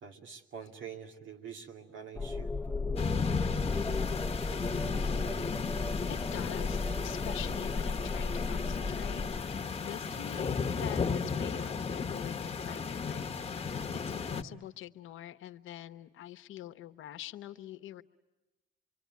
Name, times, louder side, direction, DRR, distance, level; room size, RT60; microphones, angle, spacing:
voice 1, 0.0-2.5, right 7 dB, 75° right, 3 dB, 2.6 m, -46 dB
sound 1, 2.1-9.4, left 3 dB, 10° left, 0.9 m, -35 dB
sound 2, 3.0-14.4, left 5 dB, 30° left, 1.2 m, -35 dB
voice 2, 6.1-9.3 9.8-18.0, left 12 dB, 85° left, 10 dB, 0.9 m, -45 dB
26.5 x 24.0 x 9.4 m, 1.1 s
cardioid pair, 90°, 20 cm